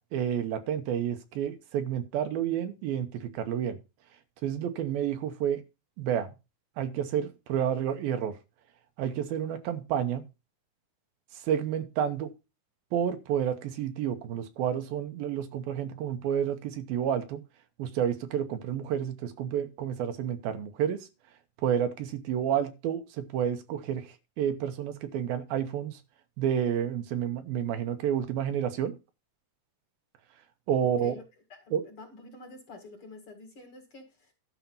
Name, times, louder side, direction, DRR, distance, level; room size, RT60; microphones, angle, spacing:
voice 1, 0.1-3.8 4.4-5.6 6.0-6.3 6.8-8.4 9.0-10.2 11.4-12.3 12.9-17.4 17.8-21.1 21.6-26.0 26.4-28.9 30.7-31.1 31.7-31.8, right 9 dB, 80° right, 2.8 m, -30 dB
voice 2, 30.8-31.2 31.5-34.3, left 2 dB, 40° left, 2.5 m, -48 dB
12.0 x 5.7 x 5.5 m
omnidirectional pair, 4.3 m